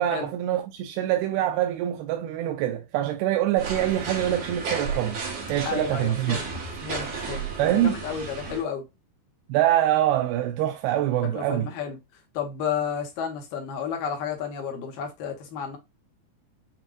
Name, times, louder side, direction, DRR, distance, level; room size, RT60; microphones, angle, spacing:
voice 1, 0.0-5.2 5.5-6.4 7.6-8.0 9.5-11.7, right 12 dB, 85° right, 2.5 m, -24 dB
sound 1, 3.6-8.6, right 4 dB, 55° right, 2.1 m, -33 dB
voice 2, 5.6-6.5 6.8-8.8 11.3-12.0 12.3-15.8, left 7 dB, 70° left, 2.8 m, -32 dB
7.5 x 2.6 x 2.5 m
omnidirectional pair, 4.4 m